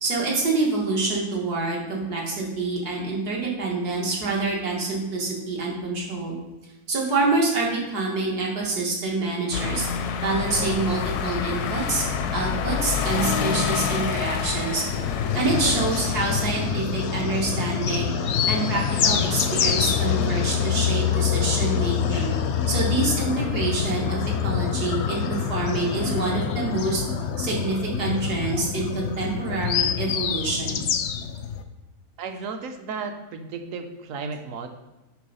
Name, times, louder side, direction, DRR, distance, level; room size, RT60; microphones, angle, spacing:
voice 1, 0.0-6.4 6.9-9.9 10.2-12.0 12.3-18.1 18.5-22.3 22.7-27.0 27.4-30.8, right 3 dB, 80° right, -2 dB, 2.1 m, -26 dB
sound 1, 9.5-16.8, left 7 dB, 80° left, 1.1 m, -28 dB
sound 2, 14.9-31.6, left 8 dB, 65° left, 0.7 m, -26 dB
voice 2, 32.2-34.7, right 5 dB, 65° right, 6 dB, 1.1 m, -34 dB
9.5 x 3.4 x 5.4 m, 1.0 s
omnidirectional pair, 1.6 m